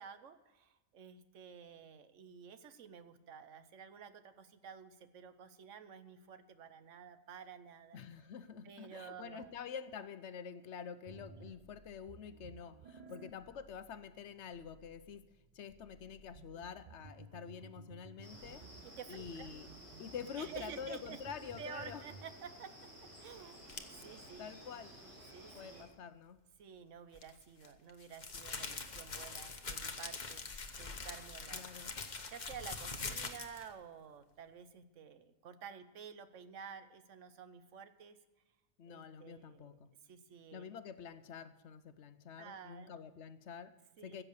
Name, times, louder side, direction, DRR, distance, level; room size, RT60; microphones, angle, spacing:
voice 1, 0.0-8.0 8.6-9.5 11.4-11.6 16.5-16.6 18.8-19.5 20.4-21.2 21.6-22.7 23.2-24.5 25.3-25.9 26.6-30.5 30.8-31.7 32.3-38.2 38.9-39.8 40.1-40.7 42.4-43.0 44.0-44.2, right 7 dB, 75° right, 11 dB, 1.2 m, -51 dB
voice 2, 7.9-15.2 15.5-18.7 19.1-19.7 20.0-22.0 24.1-25.0 25.5-26.4 31.5-31.9 38.8-39.9 40.5-44.2, left 7 dB, 65° left, 12 dB, 1.0 m, -47 dB
sound 1, 11.1-22.3, right 3 dB, 35° right, 0.8 m, -57 dB
sound 2, 18.2-25.8, equal, 60° right, 4.5 m, -55 dB
sound 3, 23.7-24.0 27.1-33.7, left 4 dB, 40° left, 1.1 m, -44 dB
15.5 x 7.3 x 6.6 m, 1.1 s
omnidirectional pair, 1.3 m